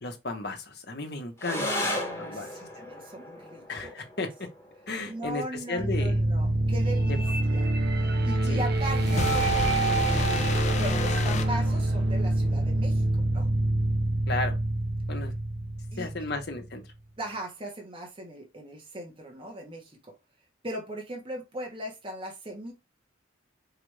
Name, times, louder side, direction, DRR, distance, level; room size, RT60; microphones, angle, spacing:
voice 1, 0.0-2.5 3.7-4.3 4.9-6.2 7.1-7.2 8.4-8.6 14.3-14.5 15.1-15.3 16.0-16.8, left 3 dB, 55° left, 1.0 m, -34 dB
sound 1, 1.4-10.4, left 1 dB, 15° left, 1.1 m, -38 dB
voice 2, 1.5-3.9 5.0-7.6 7.9-13.5 15.9-16.1 17.2-20.1 20.6-22.7, right 1 dB, 30° right, 1.0 m, -39 dB
sound 2, 5.8-16.7, right 2 dB, 55° right, 0.7 m, -26 dB
sound 3, 8.6-12.2, left 3 dB, 35° left, 0.4 m, -30 dB
4.8 x 2.5 x 3.2 m
head